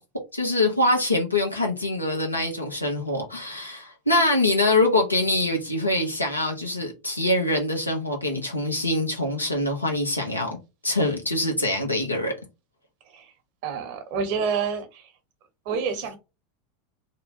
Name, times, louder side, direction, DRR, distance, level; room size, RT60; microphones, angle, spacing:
voice 1, 0.3-10.6 10.8-12.3, left 2 dB, 85° left, 0.8 m, -24 dB
voice 2, 13.6-15.1 15.6-16.2, right 6 dB, 50° right, 0.8 m, -28 dB
2.7 x 2.1 x 2.8 m
figure-of-eight pair, 80°, 0 cm